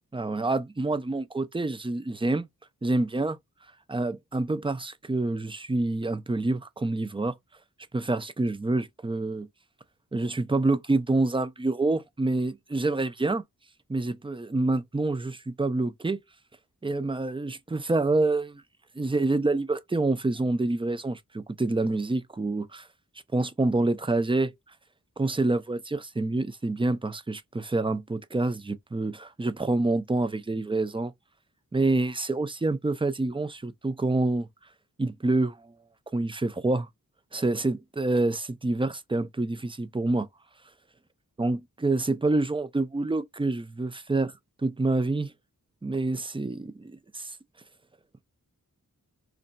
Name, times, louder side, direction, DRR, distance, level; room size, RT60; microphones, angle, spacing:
voice 1, 0.1-2.5 2.8-3.4 3.9-7.4 7.9-9.5 10.1-13.4 13.9-16.2 16.8-18.6 19.0-22.9 23.3-24.5 25.2-31.1 31.7-34.5 35.0-35.7 36.1-36.9 37.3-40.2 41.4-44.3 44.6-45.3 45.8-47.3, right 2 dB, 15° right, 0.5 m, -27 dB
2.6 x 2.1 x 3.9 m
wide cardioid pair, 60°, 34 cm